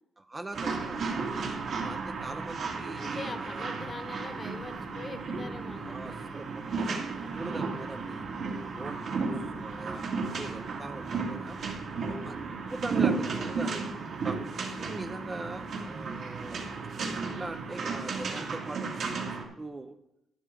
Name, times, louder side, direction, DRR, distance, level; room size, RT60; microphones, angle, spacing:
voice 1, 0.2-1.2 1.6-3.7 5.7-8.3 8.7-11.6 12.1-12.4 12.7-13.7 14.2-14.4 14.8-16.6 17.1-20.0, right 2 dB, 15° right, 8 dB, 0.5 m, -42 dB
sound 1, 0.5-19.4, right 4 dB, 55° right, 2.0 m, -34 dB
voice 2, 2.9-6.1, left 3 dB, 25° left, 8 dB, 1.0 m, -42 dB
11.5 x 11.0 x 3.7 m, 0.84 s
cardioid pair, 150°, 0 cm